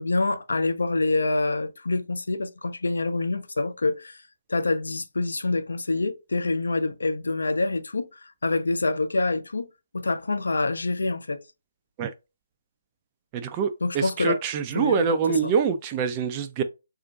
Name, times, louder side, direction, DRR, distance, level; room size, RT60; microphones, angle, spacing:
voice 1, 0.0-4.2 4.5-9.7 9.9-11.4 13.8-14.4 14.7-15.2 15.4-15.5, left 2 dB, 65° left, 0.5 m, -26 dB
voice 2, 13.3-16.6, right 6 dB, 25° right, 0.4 m, -25 dB
4.9 x 2.5 x 2.2 m
figure-of-eight pair, 140°, 0 cm